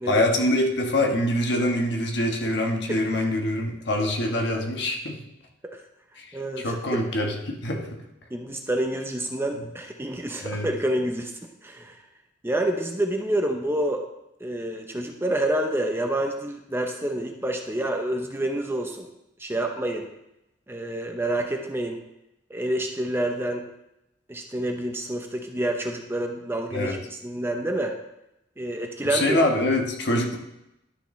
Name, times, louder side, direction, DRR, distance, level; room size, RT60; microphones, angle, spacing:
voice 1, 0.1-5.2 6.2-6.3 6.6-8.0 10.4-10.7 26.7-27.0 29.0-30.4, left 1 dB, 60° left, 2 dB, 1.2 m, -24 dB
voice 2, 6.3-7.0 8.3-11.9 12.4-14.0 14.4-19.1 19.4-20.1 20.7-22.0 22.5-23.6 24.3-27.9 28.6-29.4, right 1 dB, 10° right, 3 dB, 0.7 m, -28 dB
11.5 x 6.5 x 3.2 m, 0.87 s
head